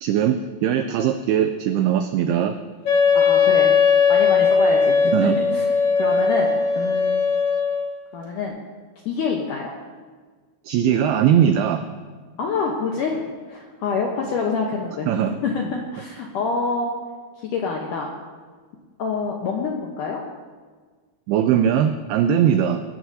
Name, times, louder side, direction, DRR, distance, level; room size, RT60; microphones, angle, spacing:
voice 1, 0.0-2.5 5.1-5.3 10.7-11.8 15.1-15.4 21.3-22.8, right 9 dB, 85° right, 7 dB, 2.2 m, -20 dB
Wind instrument woodwind instrument, 2.9-7.9, left 5 dB, 45° left, 3.4 m, -18 dB
voice 2, 3.1-3.7 4.1-5.7 6.0-7.2 8.1-8.6 9.1-9.7 12.4-13.2 13.5-15.1 15.4-16.9 17.5-18.1 19.0-20.2, left 4 dB, 75° left, -1 dB, 1.9 m, -26 dB
19.0 x 15.0 x 2.8 m, 1.5 s
omnidirectional pair, 5.1 m